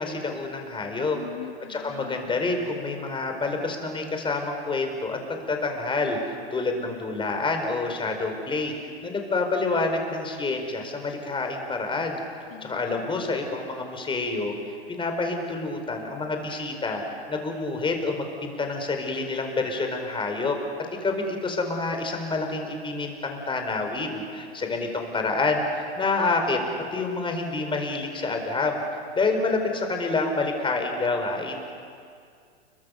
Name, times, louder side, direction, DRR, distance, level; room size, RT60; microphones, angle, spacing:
voice 1, 0.0-1.2 1.7-8.7 9.0-12.2 12.6-14.5 14.9-17.0 17.3-20.6 21.0-26.6 26.9-28.8 29.1-31.6, left 3 dB, 15° left, 4 dB, 4.6 m, -28 dB
voice 2, 1.1-2.4 12.5-13.3, left 12 dB, 65° left, 5 dB, 1.7 m, -43 dB
29.0 x 23.0 x 7.0 m, 2.3 s
hypercardioid pair, 105°, 32 cm